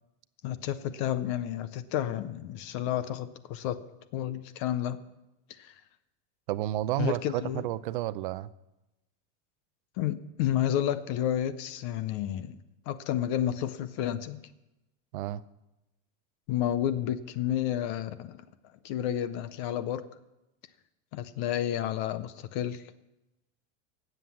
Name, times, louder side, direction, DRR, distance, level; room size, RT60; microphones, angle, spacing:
voice 1, 0.4-3.8 4.1-5.0 5.6-5.8 7.0-7.7 10.0-12.6 12.9-14.4 16.5-18.4 18.8-20.0 21.1-22.8, left 11 dB, 25° left, 14 dB, 0.4 m, -31 dB
voice 2, 6.5-8.5 15.1-15.4, right 15 dB, 45° right, 16 dB, 0.5 m, -31 dB
18.5 x 7.9 x 7.1 m, 0.96 s
supercardioid pair, 180°, 36 cm